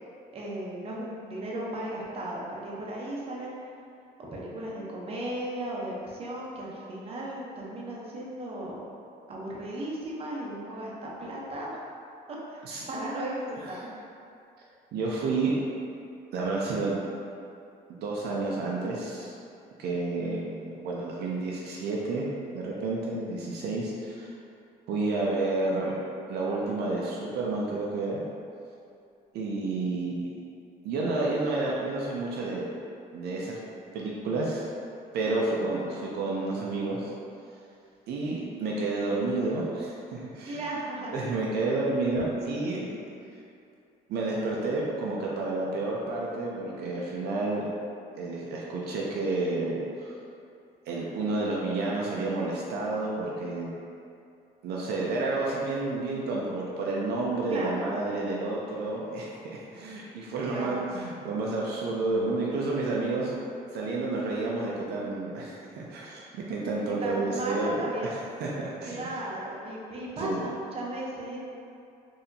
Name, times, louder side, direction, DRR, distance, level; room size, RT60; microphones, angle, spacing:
voice 1, 0.3-3.7 4.2-8.9 9.3-11.8 12.5-14.0 35.3-35.6 40.4-41.5 57.5-57.9 60.4-61.0 66.8-68.1 68.8-71.4, right 1 dB, 35° right, -4 dB, 0.8 m, -36 dB
voice 2, 14.9-15.6 16.3-17.0 17.9-19.4 19.8-22.2 22.5-24.3 24.9-26.0 26.3-28.2 29.3-30.4 30.8-32.7 33.1-33.6 33.9-34.7 35.1-37.1 38.1-40.6 41.1-42.9 44.1-47.6 48.1-50.2 50.9-53.7 54.6-63.4 63.7-69.1 70.2-70.4, right 3 dB, 70° right, -4 dB, 0.5 m, -30 dB
4.1 x 2.8 x 2.7 m, 2.5 s
cardioid pair, 110°, 17 cm